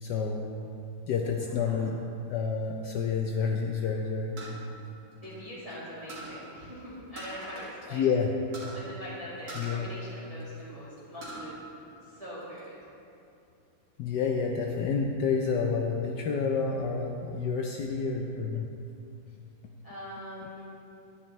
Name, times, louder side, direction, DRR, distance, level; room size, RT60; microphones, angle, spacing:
voice 1, 0.0-0.7 1.1-2.0 2.3-4.3 7.9-8.3 9.5-9.9 14.0-18.7, left 5 dB, 75° left, 1 dB, 1.0 m, -29 dB
voice 2, 1.4-2.0 5.2-8.1 8.7-11.6 12.0-12.8 19.8-20.6, equal, 15° right, -10 dB, 1.8 m, -43 dB
sound 1, 4.4-5.7 6.1-6.4 7.2-7.8 8.0-8.1 8.5-8.8 9.5-10.6 11.0-11.5 11.9-12.7, right 2 dB, 45° right, 2.1 m, -43 dB
11.0 x 9.7 x 3.1 m, 2.6 s
omnidirectional pair, 2.3 m